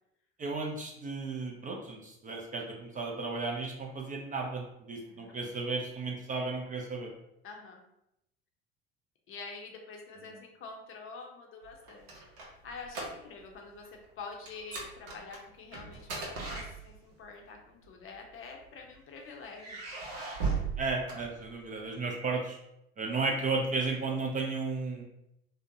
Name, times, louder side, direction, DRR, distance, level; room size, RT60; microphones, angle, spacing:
voice 1, 0.4-7.1 20.8-22.6 23.0-25.0, right 3 dB, 25° right, 0 dB, 0.4 m, -34 dB
voice 2, 7.4-7.8 9.3-19.8 20.4-20.6, left 4 dB, 40° left, 2 dB, 0.6 m, -47 dB
sound 1, 11.7-13.6 13.8-14.1 14.5-17.2 18.1-19.0 19.5-21.8, right 4 dB, 70° right, 0.7 m, -38 dB
2.6 x 2.1 x 2.6 m, 0.82 s
hypercardioid pair, 65°, 32 cm